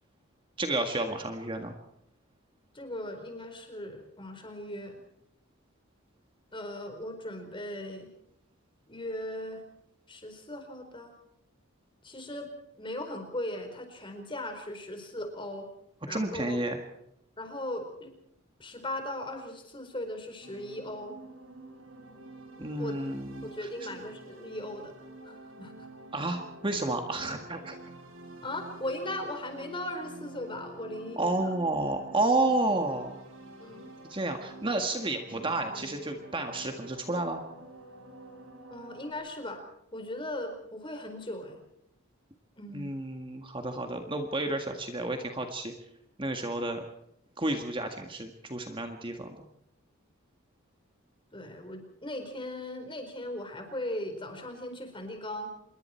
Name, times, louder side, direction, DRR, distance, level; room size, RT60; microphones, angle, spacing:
voice 1, 0.6-1.7 16.1-16.8 22.6-23.5 26.1-27.8 31.2-33.2 34.0-37.4 42.7-45.7 46.2-46.8 47.4-49.4, right 2 dB, 25° right, 5 dB, 1.8 m, -31 dB
voice 2, 2.7-5.0 6.5-8.1 8.9-9.6 10.1-11.1 12.0-15.7 16.1-16.6 17.4-18.1 18.6-21.2 22.8-23.0 23.4-24.9 25.2-25.9 28.4-31.5 33.6-33.9 38.7-39.6 39.9-41.6 42.6-42.9 51.3-55.5, left 1 dB, 25° left, 5 dB, 4.5 m, -38 dB
sound 1, 20.4-39.1, right 1 dB, 75° right, 4.1 m, -48 dB
27.0 x 22.0 x 4.5 m, 0.76 s
head